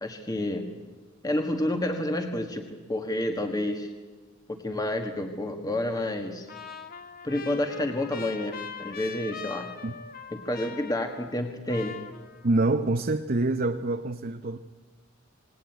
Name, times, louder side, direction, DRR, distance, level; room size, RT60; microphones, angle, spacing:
voice 1, 0.0-0.7 1.2-3.9 4.5-6.5 7.2-9.7 10.3-12.0, left 1 dB, 20° left, 5 dB, 1.6 m, -29 dB
Trumpet, 6.5-11.4 11.7-12.7, left 6 dB, 45° left, 1.5 m, -42 dB
voice 2, 12.4-14.6, right 2 dB, 45° right, 7 dB, 0.8 m, -26 dB
27.5 x 19.5 x 9.2 m, 1.3 s
head